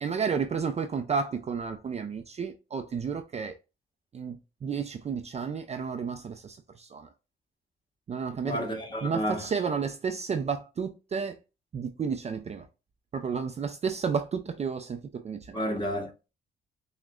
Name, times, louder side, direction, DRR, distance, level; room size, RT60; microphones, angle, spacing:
voice 1, 0.0-3.6 4.1-7.1 8.1-8.6 9.0-11.4 11.7-12.7 13.1-15.6, right 6 dB, 35° right, 0.4 m, -32 dB
voice 2, 8.4-9.5 15.5-16.3, equal, 25° left, 1.4 m, -31 dB
5.9 x 2.2 x 2.3 m
cardioid pair, 90°, 20 cm